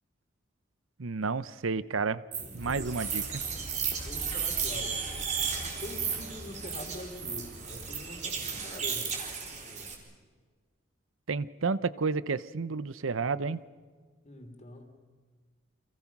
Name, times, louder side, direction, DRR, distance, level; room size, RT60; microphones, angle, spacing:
voice 1, 1.0-2.2 2.5-3.4 11.3-13.6, right 4 dB, 85° right, 16 dB, 0.8 m, -31 dB
sound 1, 2.3-9.9, right 6 dB, 35° right, 4.1 m, -34 dB
sound 2, 2.6-8.6, equal, 55° right, 5.2 m, -46 dB
voice 2, 4.0-5.0 5.7-9.2 14.2-15.0, left 1 dB, 35° left, 5 dB, 3.3 m, -44 dB
30.0 x 26.5 x 6.0 m, 1.5 s
head